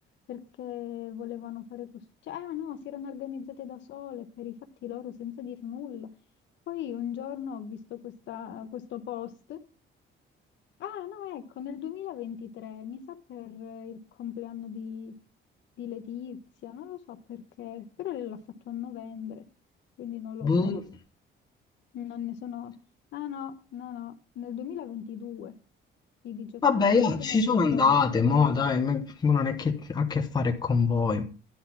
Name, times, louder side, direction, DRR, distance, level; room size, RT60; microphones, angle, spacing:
voice 1, 0.3-1.9 2.2-4.5 4.8-6.1 6.7-9.6 10.8-15.1 15.8-18.4 18.7-19.4 20.0-20.7 21.9-22.7 23.1-25.5 26.2-28.0 28.2-28.5, left 9 dB, 65° left, 1.0 m, -38 dB
voice 2, 20.4-20.8 26.6-31.2, left 5 dB, 20° left, 0.8 m, -24 dB
10.0 x 3.9 x 7.2 m
cardioid pair, 175°, 20 cm